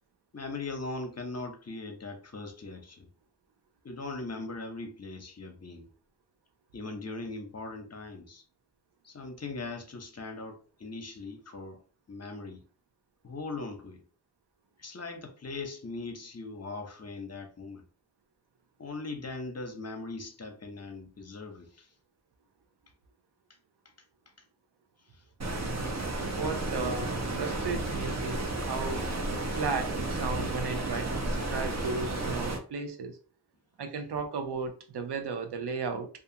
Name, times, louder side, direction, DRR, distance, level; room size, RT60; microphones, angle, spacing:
voice 1, 0.3-3.1 3.8-5.9 6.7-8.4 9.0-11.8 12.1-12.6 13.2-14.0 14.8-17.8 18.8-21.9 25.1-25.2, left 3 dB, 40° left, 0.7 m, -40 dB
Stream, 25.4-32.6, right 2 dB, 40° right, 0.8 m, -32 dB
voice 2, 26.3-29.0 29.5-33.2 33.8-36.1, right 4 dB, 80° right, 0.6 m, -35 dB
2.4 x 2.3 x 2.7 m
cardioid pair, 40°, 40 cm